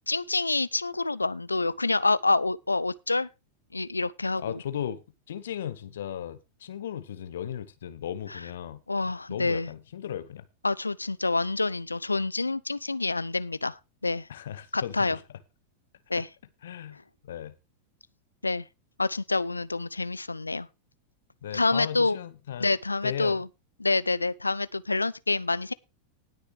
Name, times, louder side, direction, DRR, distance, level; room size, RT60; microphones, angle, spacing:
voice 1, 0.1-3.3 3.7-4.6 8.3-8.4 8.9-9.7 10.6-14.3 14.7-15.2 16.1-16.3 18.4-18.6 19.0-20.7 21.5-22.2 22.6-23.5 23.8-25.7, left 3 dB, 80° left, 0.5 m, -27 dB
voice 2, 4.4-5.0 5.3-8.8 9.3-10.4 14.3-15.2 16.6-17.5 21.4-22.7 23.0-23.4, left 10 dB, 60° left, 1.0 m, -36 dB
19.5 x 6.5 x 3.3 m
figure-of-eight pair, 90°, 0 cm